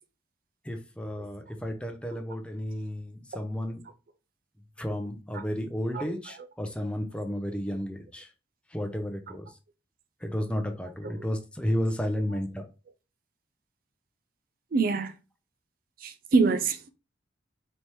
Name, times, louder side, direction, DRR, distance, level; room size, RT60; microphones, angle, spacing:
voice 1, 0.7-3.8 4.8-8.3 8.7-9.4 10.2-12.6, equal, 5° left, 0.6 m, -32 dB
voice 2, 5.9-6.5 7.3-7.4 9.3-9.4 11.0-11.2 12.3-12.4 14.7-15.1 16.0-16.9, right 4 dB, 50° right, 0.4 m, -27 dB
4.2 x 3.4 x 3.0 m
head